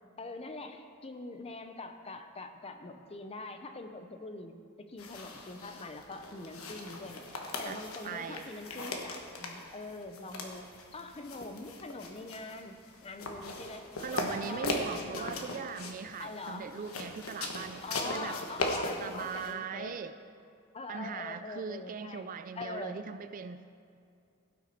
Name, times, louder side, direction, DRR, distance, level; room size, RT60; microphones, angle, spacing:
voice 1, 0.2-7.3 7.6-10.7 10.9-12.8 13.0-13.9 14.1-14.8 15.2-15.3 16.2-16.8 17.8-20.0 20.7-22.3 22.6-23.0, left 3 dB, 30° left, 7 dB, 0.7 m, -43 dB
sound 1, 5.0-19.5, left 2 dB, 80° left, 1.2 m, -39 dB
voice 2, 8.0-8.5 14.0-18.4 19.0-20.2 20.9-23.7, right 6 dB, 40° right, 11 dB, 0.3 m, -40 dB
16.5 x 6.1 x 4.4 m, 2.4 s
head